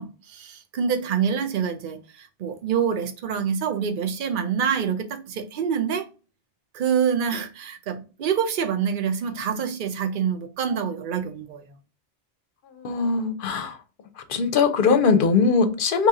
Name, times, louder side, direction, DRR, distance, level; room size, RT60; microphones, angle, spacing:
voice 1, 0.0-6.1 6.7-11.6, right 7 dB, 55° right, 0.7 m, -26 dB
voice 2, 12.7-13.8 14.3-16.1, left 5 dB, 60° left, 0.7 m, -21 dB
2.9 x 2.7 x 3.6 m
omnidirectional pair, 1.1 m